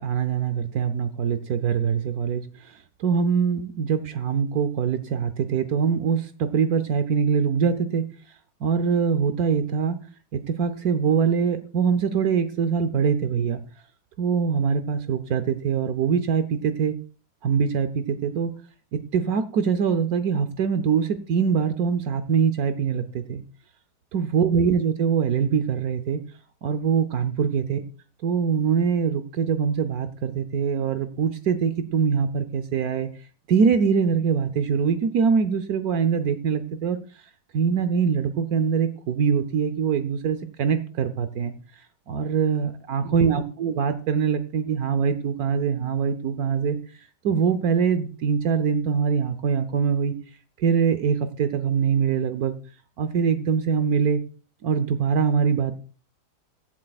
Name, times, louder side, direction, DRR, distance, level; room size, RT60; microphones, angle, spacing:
voice 1, 0.0-8.1 8.6-10.0 10.3-13.6 14.2-16.9 17.4-18.5 18.9-23.4 24.1-26.2 26.6-27.8 28.2-33.1 33.5-37.0 37.5-41.5 42.1-46.8 47.2-50.1 50.6-52.5 53.0-54.2 54.6-55.8, right 6 dB, 70° right, 10 dB, 1.2 m, -23 dB
22.5 x 7.6 x 2.4 m, 0.38 s
omnidirectional pair, 1.7 m